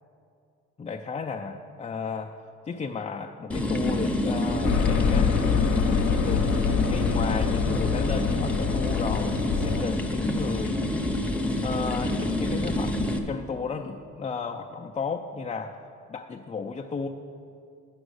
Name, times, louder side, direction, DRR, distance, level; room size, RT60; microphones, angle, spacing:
voice 1, 0.8-2.3 2.7-5.3 6.2-6.5 6.9-10.8 11.6-15.7 16.1-17.1, left 5 dB, 20° left, 2 dB, 0.4 m, -33 dB
sound 1, 3.5-13.2, left 1 dB, 5° left, 0.8 m, -27 dB
sound 2, 4.6-9.8, left 7 dB, 75° left, 0.7 m, -26 dB
9.0 x 6.2 x 6.5 m, 2.5 s
cardioid pair, 90°, 30 cm